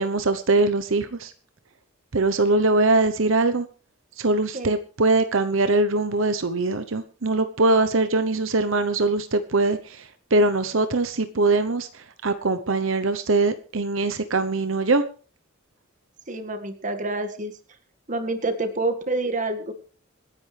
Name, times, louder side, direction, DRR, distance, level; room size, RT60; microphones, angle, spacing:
voice 1, 0.0-1.3 2.1-3.7 4.2-15.0, right 2 dB, 70° right, 10 dB, 0.9 m, -22 dB
voice 2, 16.3-17.6 18.1-19.7, right 2 dB, 40° right, 7 dB, 1.9 m, -27 dB
26.5 x 10.5 x 3.4 m, 0.39 s
head